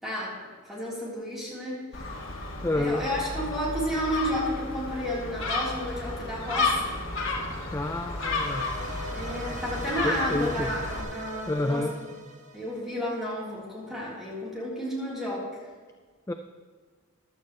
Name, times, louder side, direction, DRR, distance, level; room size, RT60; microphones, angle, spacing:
voice 1, 0.0-0.4 0.7-2.1 2.7-7.0 9.1-12.0 12.5-15.5, equal, ahead, -7 dB, 3.8 m, -32 dB
Gull seagull, 1.9-11.0, left 3 dB, 70° left, 1.9 m, -32 dB
voice 2, 2.6-3.1 7.7-8.7 10.0-10.7 11.5-12.0 16.3-16.4, left 2 dB, 15° left, 6 dB, 0.4 m, -29 dB
sound 1, 5.4-11.0, left 1 dB, 40° left, 2.1 m, -47 dB
sound 2, 8.1-13.3, right 1 dB, 35° right, 1.4 m, -42 dB
15.0 x 11.5 x 3.2 m, 1.6 s
head